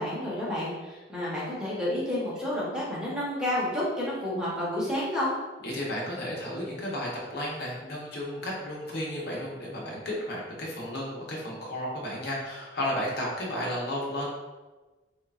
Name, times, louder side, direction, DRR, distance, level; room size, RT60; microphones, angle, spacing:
voice 1, 0.0-5.3, left 1 dB, 5° right, -7 dB, 0.9 m, -30 dB
voice 2, 5.6-14.3, left 1 dB, 60° left, -4 dB, 0.8 m, -33 dB
3.4 x 3.0 x 2.4 m, 1.2 s
head